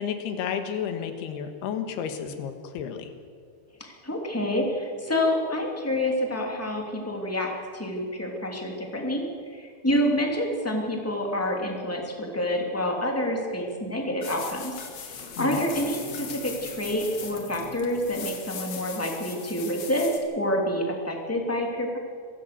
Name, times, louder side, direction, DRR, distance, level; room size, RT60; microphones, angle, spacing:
voice 1, 0.0-3.1 15.4-15.6, left 8 dB, 70° left, 7 dB, 3.3 m, -32 dB
voice 2, 3.8-9.2 9.5-14.7 15.4-22.0, left 1 dB, 5° left, 1 dB, 1.5 m, -28 dB
sound 1, 14.2-20.2, left 6 dB, 50° left, 2.2 m, -39 dB
25.5 x 16.0 x 6.8 m, 2.1 s
omnidirectional pair, 5.2 m